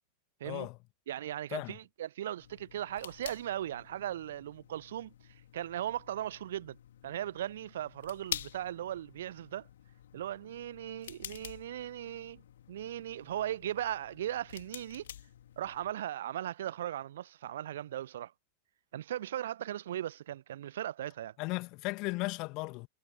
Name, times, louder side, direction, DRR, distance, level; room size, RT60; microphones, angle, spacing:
voice 1, 0.4-0.8 1.5-1.8 21.4-22.9, left 25 dB, 40° left, 2.1 m, -36 dB
voice 2, 1.1-5.1 5.5-6.8 7.0-9.7 10.1-12.4 12.7-15.1 15.6-18.3 18.9-21.3, right 12 dB, 60° right, 0.9 m, -38 dB
sound 1, 2.4-15.9, left 11 dB, 60° left, 3.4 m, -48 dB
figure-of-eight pair, 90°, 0 cm